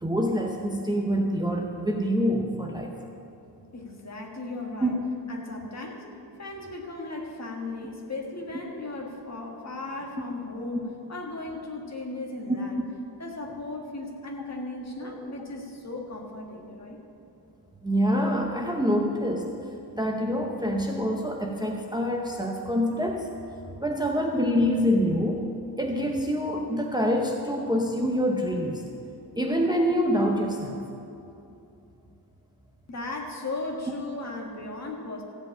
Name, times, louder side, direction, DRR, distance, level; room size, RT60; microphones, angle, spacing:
voice 1, 0.0-2.9 4.8-4.9 15.0-15.2 17.8-19.5 19.9-23.3 23.8-25.5 25.8-28.8 29.4-30.8, equal, 10° right, 1 dB, 0.8 m, -26 dB
voice 2, 3.7-4.9 5.3-6.1 6.4-10.8 11.1-12.8 13.2-17.0 32.9-35.2, left 2 dB, 40° left, 0 dB, 1.7 m, -36 dB
15.0 x 5.2 x 8.6 m, 2.7 s
wide cardioid pair, 145°, 41 cm